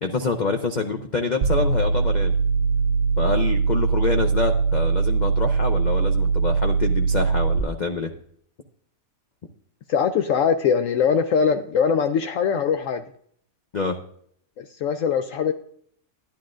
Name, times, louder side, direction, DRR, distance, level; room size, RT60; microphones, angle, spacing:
voice 1, 0.0-2.3 3.2-8.1 13.7-14.0, left 4 dB, 45° left, 5 dB, 0.6 m, -26 dB
sound 1, 1.4-7.6, right 5 dB, 60° right, 0.7 m, -21 dB
voice 2, 9.9-13.0 14.6-15.5, left 6 dB, 70° left, 8 dB, 0.9 m, -22 dB
12.0 x 10.5 x 2.5 m, 0.63 s
omnidirectional pair, 1.5 m